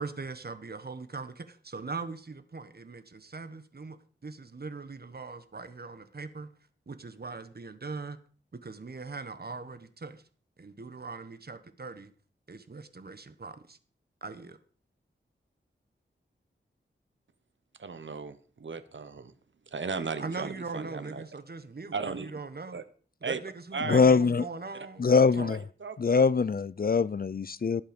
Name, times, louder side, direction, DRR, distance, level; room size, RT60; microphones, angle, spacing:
voice 1, 0.0-4.0 4.2-6.5 6.9-8.2 8.5-10.2 10.6-12.1 12.5-13.8 14.2-14.6 20.2-22.8 23.2-25.0 25.4-25.5, right 4 dB, 50° right, 1.4 m, -40 dB
voice 2, 17.8-19.3 19.7-21.2 21.9-22.3 22.7-22.8 23.2-23.4 23.7-24.0 24.7-24.9 25.1-26.3, right 5 dB, 70° right, 1.1 m, -36 dB
voice 3, 23.9-24.5 25.0-25.6 26.0-27.8, left 5 dB, 50° left, 0.5 m, -23 dB
18.0 x 8.1 x 5.3 m
wide cardioid pair, 95°, 20 cm